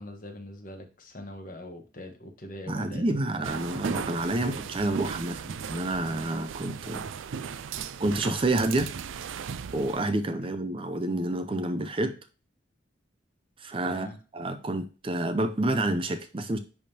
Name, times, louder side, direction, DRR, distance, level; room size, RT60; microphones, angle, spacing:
voice 1, 0.0-3.2 13.8-14.2, left 1 dB, 45° left, 1.2 m, -42 dB
voice 2, 2.7-7.1 8.0-8.9 9.7-12.2 13.6-16.6, right 2 dB, 25° right, 0.5 m, -29 dB
sound 1, 3.4-10.0, right 7 dB, 85° right, 0.4 m, -37 dB
10.5 x 3.5 x 2.8 m
head